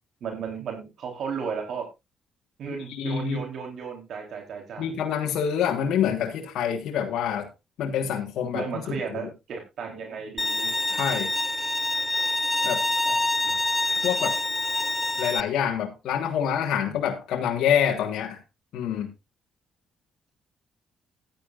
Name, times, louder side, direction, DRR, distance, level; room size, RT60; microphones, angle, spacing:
voice 1, 0.2-1.9 2.6-5.0 8.5-10.7 13.1-13.6 16.8-17.0, right 6 dB, 70° right, 2 dB, 3.7 m, -35 dB
voice 2, 2.9-3.4 4.8-7.5 7.8-8.9 9.2-9.3 10.9-11.3 12.6-12.8 14.0-14.4 15.2-18.4 18.7-19.1, left 8 dB, 80° left, 2 dB, 1.6 m, -26 dB
Bowed string instrument, 10.4-15.4, left 2 dB, 15° left, 0.6 m, -26 dB
14.5 x 10.5 x 2.5 m, 0.24 s
cardioid pair, 90°, 0 cm